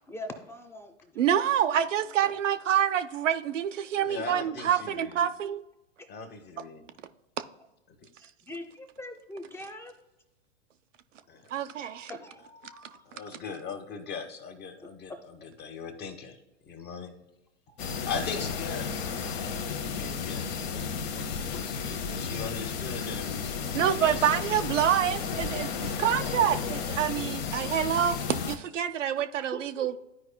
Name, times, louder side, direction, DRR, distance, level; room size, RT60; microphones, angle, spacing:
voice 1, 0.1-1.9 4.0-4.3 6.0-6.1 8.2-9.9 12.1-13.1 15.1-15.2 17.7-17.8 21.5-21.7 29.4-30.0, left 1 dB, 5° left, 0.7 m, -43 dB
voice 2, 1.2-5.6 11.5-12.1 23.7-29.9, right 10 dB, 80° right, 0.6 m, -27 dB
voice 3, 4.0-5.2 6.1-6.9 8.0-8.1 11.3-11.5 13.0-17.2 18.0-23.5 23.9-24.3, left 5 dB, 30° left, 1.1 m, -40 dB
sound 1, 17.8-28.6, left 6 dB, 55° left, 0.9 m, -33 dB
13.0 x 4.8 x 2.2 m
hypercardioid pair, 105°, 36 cm